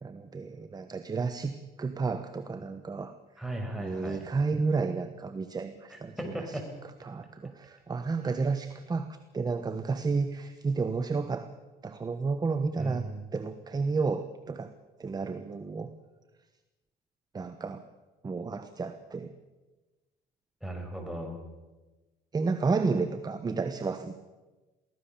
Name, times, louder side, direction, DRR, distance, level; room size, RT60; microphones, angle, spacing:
voice 1, 0.0-3.1 3.7-6.1 7.0-9.1 9.3-11.5 11.8-13.1 13.3-14.7 15.0-15.9 17.3-17.8 18.2-19.3 22.3-24.1, right 4 dB, 25° right, 9 dB, 1.2 m, -31 dB
voice 2, 3.4-4.2 5.9-6.7 12.8-13.3 20.6-21.4, right 1 dB, ahead, 2 dB, 6.0 m, -37 dB
23.5 x 17.0 x 7.1 m, 1.2 s
cardioid pair, 110°, 17 cm